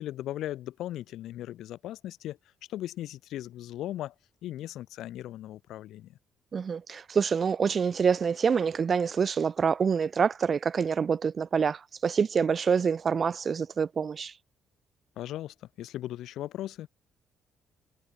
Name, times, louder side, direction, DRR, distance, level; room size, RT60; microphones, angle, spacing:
voice 1, 0.0-2.4 2.7-4.1 4.4-6.2 15.2-16.9, left 13 dB, 85° left, 2.0 m, -37 dB
voice 2, 6.5-14.3, right 6 dB, 45° right, 0.5 m, -26 dB
cardioid pair, 90°, 0 cm